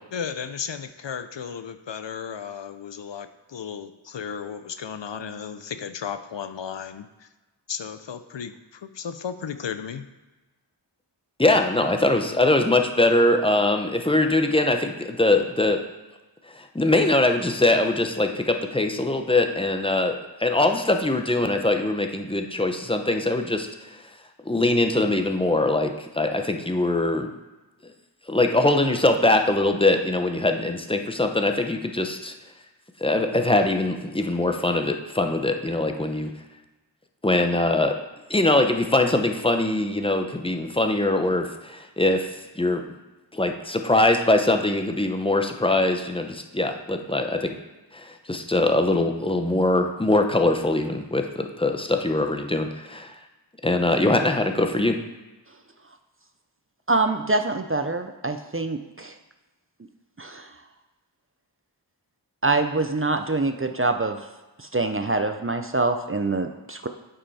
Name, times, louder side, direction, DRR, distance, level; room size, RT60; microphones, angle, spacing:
voice 1, 0.1-7.3 7.7-10.1, left 7 dB, 70° left, 11 dB, 0.6 m, -34 dB
voice 2, 11.4-15.8 16.5-23.7 24.5-27.3 28.3-32.3 33.0-36.3 37.2-37.9 38.3-42.8 43.3-47.5 47.9-53.1 53.6-55.0, left 2 dB, 10° left, 5 dB, 0.7 m, -22 dB
voice 3, 56.9-59.2 60.2-60.6 62.4-64.3 64.6-66.9, right 3 dB, 30° right, 7 dB, 0.5 m, -25 dB
8.7 x 5.6 x 4.1 m, 1.1 s
wide cardioid pair, 40°, 46 cm